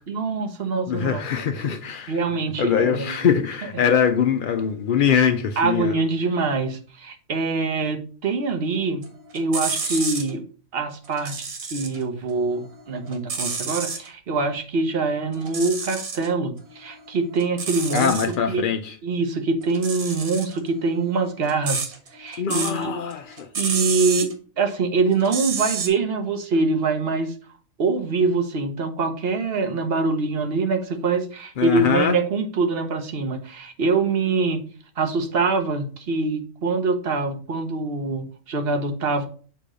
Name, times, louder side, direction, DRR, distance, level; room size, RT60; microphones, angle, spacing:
voice 1, 0.1-1.2 2.1-3.2 5.6-9.0 9.3-10.4 10.7-18.1 18.5-18.6 19.0-22.9 23.5-24.3 24.6-27.3 27.8-34.6 35.0-39.3, right 4 dB, 50° right, 1.0 m, -24 dB
voice 2, 0.9-2.2 2.6-5.9 9.8-10.0 17.9-18.9 22.4-23.5 31.6-32.2, left 7 dB, 90° left, 0.4 m, -22 dB
sound 1, 9.0-10.3 11.0-12.0 12.4-14.1 15.3-16.3 16.7-18.3 19.6-22.8 23.1-24.3 25.2-25.9, right 5 dB, 75° right, 1.7 m, -30 dB
6.8 x 3.0 x 4.9 m
omnidirectional pair, 1.5 m